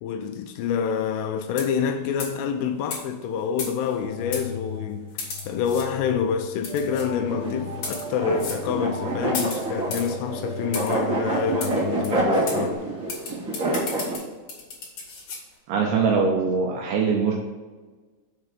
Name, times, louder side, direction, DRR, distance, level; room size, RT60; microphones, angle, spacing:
voice 1, 0.0-5.1 5.5-12.9, left 7 dB, 85° left, 2.9 m, -27 dB
sound 1, 1.5-1.9 2.2-2.4 2.9-3.0 3.6-4.0 4.3-4.5 5.2-5.9 6.6-7.1 7.7-8.1 8.4-8.6 9.3-10.1 10.7-11.0 11.6-11.7 12.0-12.1 12.5-12.6 13.1-15.4, left 4 dB, 55° left, 2.2 m, -34 dB
sound 2, 4.0-12.7, left 2 dB, 35° right, 1.8 m, -38 dB
sound 3, 7.2-14.1, right 1 dB, 60° right, 1.2 m, -27 dB
voice 2, 15.7-17.3, right 5 dB, 80° right, 2.6 m, -22 dB
7.6 x 4.8 x 5.9 m
omnidirectional pair, 6.0 m